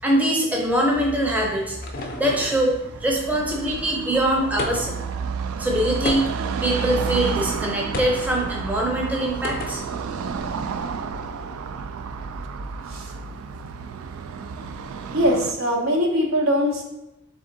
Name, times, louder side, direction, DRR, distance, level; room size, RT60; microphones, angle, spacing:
voice 1, 0.0-1.8 2.2-5.1 5.6-6.3 6.6-9.8, right 1 dB, 10° right, -2 dB, 0.6 m, -23 dB
Car passing by / Traffic noise roadway noise, 0.9-15.5, right 6 dB, 85° right, 0.3 m, -31 dB
sound 1, 1.1-2.7 4.6-5.1 6.0-6.6 7.9-8.3 9.4-9.9, left 2 dB, 45° left, 0.5 m, -32 dB
voice 2, 15.1-16.8, equal, 70° right, 1 dB, 0.8 m, -21 dB
3.5 x 3.5 x 3.8 m, 0.92 s
head